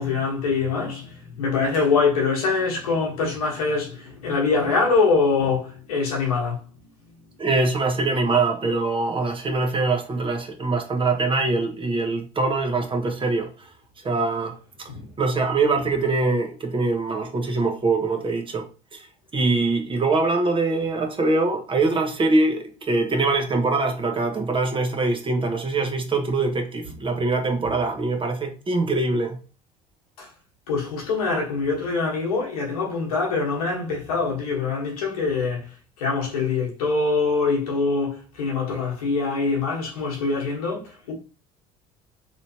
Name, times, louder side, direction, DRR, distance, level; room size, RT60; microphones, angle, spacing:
voice 1, 0.0-6.7 14.9-15.0 30.2-30.3 30.7-41.1, left 4 dB, 90° left, 1.2 m, -24 dB
voice 2, 7.4-13.7 14.0-14.9 15.2-18.7 18.9-19.1 19.3-29.4, right 3 dB, 30° right, 1.0 m, -23 dB
3.1 x 3.1 x 2.8 m
hypercardioid pair, 70°, 18 cm